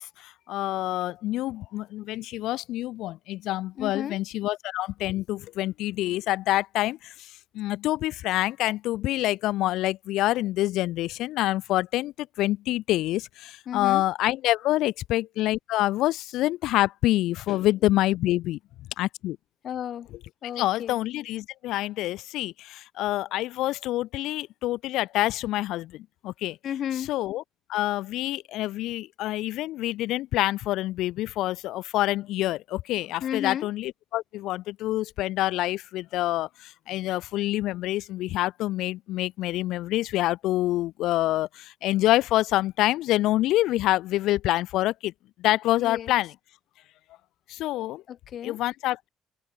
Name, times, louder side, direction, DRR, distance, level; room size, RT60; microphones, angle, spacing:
voice 1, 0.0-18.6 19.0-19.4 20.6-26.6 27.1-27.4 27.7-45.1 45.4-46.3 47.5-48.0 48.4-49.1, left 16 dB, 75° left, 0.4 m, -27 dB
voice 2, 3.8-4.2 13.7-14.0 17.5-17.7 19.6-20.1 20.4-21.0 26.6-27.1 33.2-33.7 45.8-46.1 48.1-48.6, left 10 dB, 45° left, 1.4 m, -33 dB
cardioid pair, 175°, 0 cm